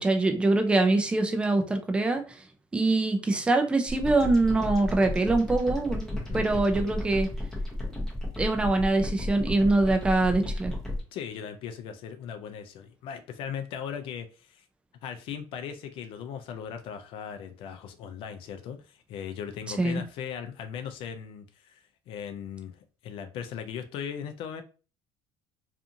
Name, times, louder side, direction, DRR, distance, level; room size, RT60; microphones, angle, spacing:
voice 1, 0.0-2.4 2.7-7.3 8.0-8.1 8.4-10.7 19.8-20.0, right 2 dB, 10° right, 5 dB, 0.4 m, -24 dB
sound 1, 3.9-11.0, left 1 dB, 5° left, 0.8 m, -33 dB
voice 2, 6.1-6.4 11.1-14.6 15.0-21.8 22.1-22.7 23.0-24.6, left 8 dB, 60° left, 8 dB, 0.4 m, -38 dB
2.5 x 2.5 x 2.7 m, 0.35 s
cardioid pair, 135°, 10 cm